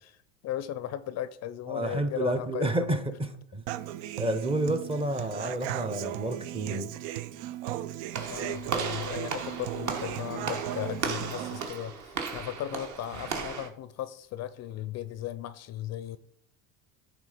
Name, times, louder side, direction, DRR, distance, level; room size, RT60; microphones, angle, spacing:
voice 1, 0.0-2.9 8.3-16.2, left 12 dB, 45° left, 14 dB, 0.5 m, -36 dB
voice 2, 1.7-3.0 3.5-3.6 4.2-6.9, right 1 dB, 15° right, 10 dB, 0.7 m, -29 dB
Human voice / Acoustic guitar, 3.7-11.7, right 13 dB, 80° right, 0.5 m, -36 dB
Walk footsteps / Slam, 8.1-13.7, right 5 dB, 50° right, 1.4 m, -35 dB
9.7 x 3.6 x 4.9 m, 0.70 s
supercardioid pair, 110°, 38 cm